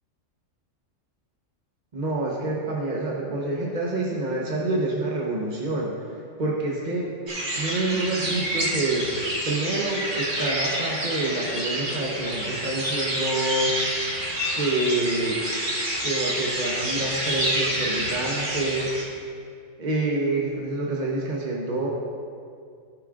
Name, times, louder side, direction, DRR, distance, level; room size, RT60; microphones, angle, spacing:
voice 1, 1.9-5.9 6.4-7.1 7.5-9.1 9.4-13.7 14.5-15.4 16.0-18.9 19.8-21.9, right 2 dB, 40° right, -3 dB, 1.2 m, -27 dB
sound 1, 7.3-19.0, right 1 dB, 70° right, 2.3 m, -28 dB
19.0 x 6.6 x 2.5 m, 2.3 s
omnidirectional pair, 1.3 m